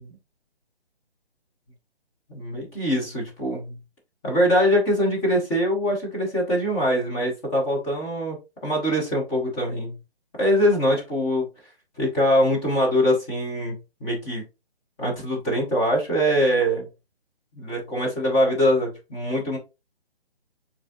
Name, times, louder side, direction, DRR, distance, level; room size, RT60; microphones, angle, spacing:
voice 1, 2.3-3.8 4.2-8.4 8.6-10.0 10.4-11.5 12.0-14.4 15.0-16.9 17.6-19.6, equal, 10° left, -2 dB, 0.8 m, -23 dB
7.0 x 2.7 x 2.4 m, 0.27 s
figure-of-eight pair, 145°, 32 cm